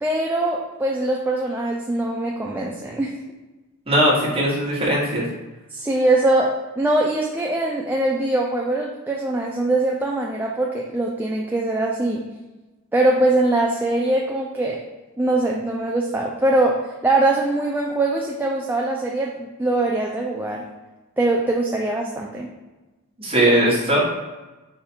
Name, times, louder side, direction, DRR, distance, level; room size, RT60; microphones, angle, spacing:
voice 1, 0.0-3.1 5.7-12.2 12.9-14.8 15.2-20.6 21.2-22.5, right 2 dB, 10° right, -2 dB, 0.3 m, -22 dB
voice 2, 3.9-5.2 23.2-24.0, right 1 dB, 25° right, -5 dB, 1.3 m, -19 dB
4.9 x 2.4 x 4.3 m, 1.1 s
head